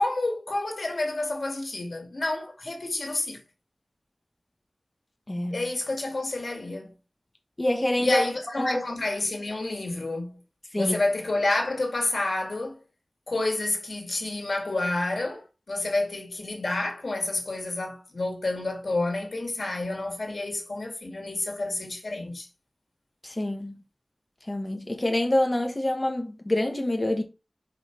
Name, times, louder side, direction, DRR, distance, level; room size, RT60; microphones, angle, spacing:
voice 1, 0.0-3.4 5.5-6.9 8.0-10.4 10.7-12.8 13.3-22.5, left 2 dB, 80° left, 2.2 m, -29 dB
voice 2, 5.3-5.6 7.6-8.3 8.6-8.8 10.7-11.0 23.2-23.8 24.5-27.2, left 1 dB, 35° left, 1.3 m, -26 dB
5.3 x 5.2 x 4.5 m
wide cardioid pair, 65°, 0 cm